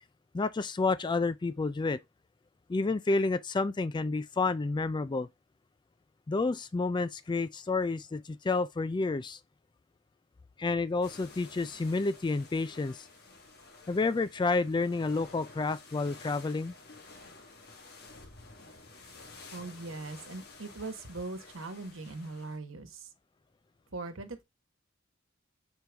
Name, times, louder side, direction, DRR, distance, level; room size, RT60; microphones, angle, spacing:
voice 1, 0.3-2.0 2.7-5.3 6.3-9.4 10.6-13.1 13.9-16.7, left 3 dB, 20° left, 0.3 m, -30 dB
sound 1, 11.0-22.6, left 3 dB, 50° left, 1.5 m, -52 dB
voice 2, 19.5-23.1 23.9-24.4, right 3 dB, 75° right, 1.3 m, -40 dB
6.6 x 4.5 x 3.4 m
head